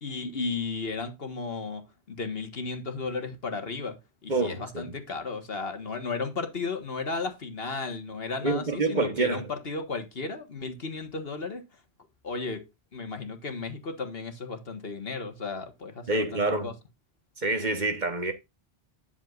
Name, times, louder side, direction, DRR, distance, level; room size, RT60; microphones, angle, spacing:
voice 1, 0.0-11.6 12.2-12.6 12.9-16.7, left 4 dB, 60° left, 1.8 m, -34 dB
voice 2, 4.3-4.9 8.4-9.5 16.1-16.7 17.4-18.3, right 2 dB, 45° right, 1.4 m, -27 dB
10.5 x 7.3 x 2.5 m
omnidirectional pair, 1.1 m